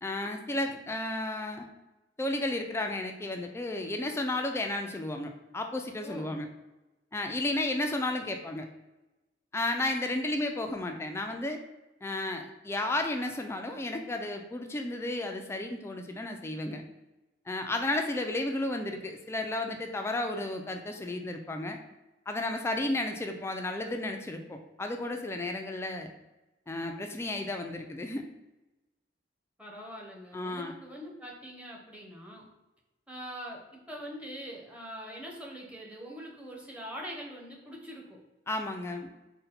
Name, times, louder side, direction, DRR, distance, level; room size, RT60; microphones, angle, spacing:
voice 1, 0.0-1.7 2.2-6.5 7.1-8.7 9.5-11.6 12.0-16.8 17.5-21.8 22.3-26.1 26.7-28.2 30.3-30.7 38.5-39.1, left 2 dB, 15° left, 4 dB, 0.3 m, -33 dB
voice 2, 6.0-6.4 29.6-32.5 33.1-38.2, equal, 5° right, -2 dB, 0.8 m, -43 dB
4.0 x 2.2 x 4.0 m, 1.0 s
head